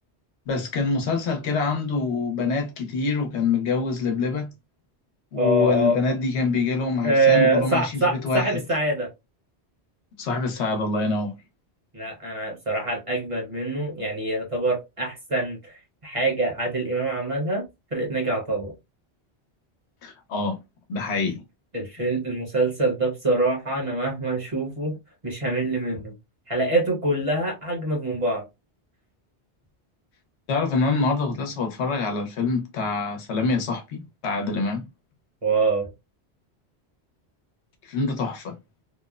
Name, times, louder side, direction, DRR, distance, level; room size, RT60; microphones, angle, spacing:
voice 1, 0.5-4.5 5.3-8.6 10.2-11.3 20.0-20.6 20.9-21.4 30.5-34.9 37.8-38.6, left 4 dB, 90° left, 1.0 m, -25 dB
voice 2, 5.4-6.0 7.0-9.1 11.9-17.6 17.9-18.7 21.7-25.0 25.2-26.1 26.5-28.5 35.4-35.9, right 2 dB, 35° right, 0.9 m, -24 dB
2.9 x 2.0 x 2.3 m
omnidirectional pair, 1.1 m